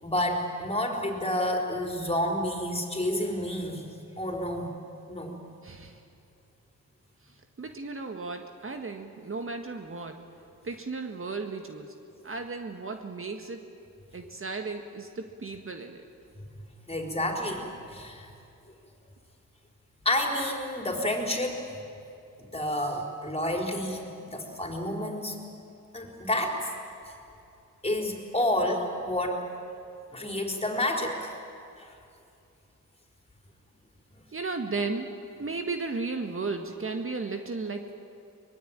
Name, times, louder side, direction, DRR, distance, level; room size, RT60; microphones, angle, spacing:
voice 1, 0.0-3.8 4.2-4.7 5.1-5.3 16.9-18.3 20.0-21.6 22.4-25.4 25.9-26.7 27.8-29.4 30.1-31.3 31.8-31.9, left 1 dB, 20° left, 2 dB, 4.6 m, -29 dB
voice 2, 5.6-6.0 7.6-10.2 10.6-11.9 12.2-13.6 14.1-16.0 34.3-35.1 35.4-37.9, right 3 dB, 40° right, 5 dB, 1.8 m, -34 dB
23.5 x 20.5 x 9.0 m, 2.6 s
cardioid pair, 70°, 33 cm